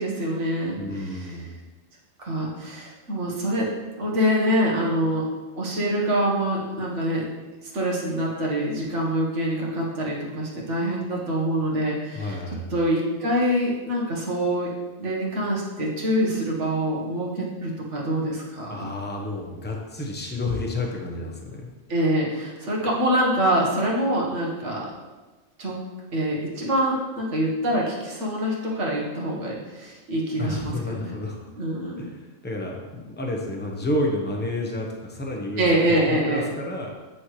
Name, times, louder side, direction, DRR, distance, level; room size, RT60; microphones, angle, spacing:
voice 1, 0.0-1.3 2.2-3.7 4.0-5.3 5.6-7.2 7.7-12.4 12.7-14.7 15.0-18.9 21.9-24.9 25.6-25.8 26.1-31.1 31.6-32.1 35.6-36.5, equal, 70° right, -3 dB, 1.7 m, -25 dB
voice 2, 0.8-1.5 12.1-12.7 18.7-21.7 30.4-31.4 32.0-36.9, left 1 dB, 10° left, 0 dB, 0.8 m, -30 dB
8.2 x 6.2 x 3.2 m, 1.2 s
omnidirectional pair, 1.3 m